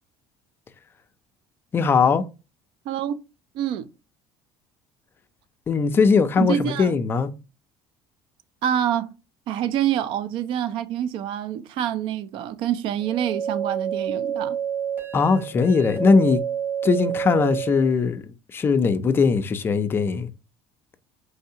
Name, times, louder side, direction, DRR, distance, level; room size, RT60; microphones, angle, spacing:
voice 1, 1.7-2.2 5.7-7.3 15.1-16.4 16.8-20.3, left 5 dB, 20° left, 0.4 m, -20 dB
voice 2, 2.9-3.2 3.5-3.9 6.4-6.9 8.6-9.1 9.5-14.6, right 10 dB, 55° right, 0.4 m, -26 dB
sound 1, 13.0-17.9, right 8 dB, 20° right, 2.4 m, -29 dB
4.5 x 3.2 x 2.7 m
cardioid pair, 165°, 10 cm